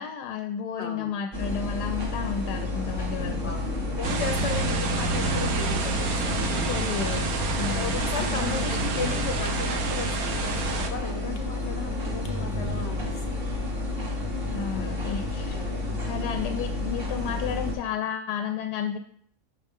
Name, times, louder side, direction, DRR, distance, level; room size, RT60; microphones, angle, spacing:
voice 1, 0.0-3.5 6.7-7.3 7.6-8.8 14.5-15.6 16.1-19.0, left 7 dB, 90° left, 8 dB, 1.2 m, -32 dB
voice 2, 0.8-1.2 3.4-6.5 7.6-13.6 14.7-15.1 15.4-16.3, left 5 dB, 60° left, 6 dB, 0.8 m, -36 dB
sound 1, 1.3-17.8, left 2 dB, 35° right, 1.7 m, -30 dB
sound 2, 4.0-10.9, right 4 dB, 65° right, 1.3 m, -29 dB
8.2 x 5.7 x 3.6 m, 0.63 s
omnidirectional pair, 1.7 m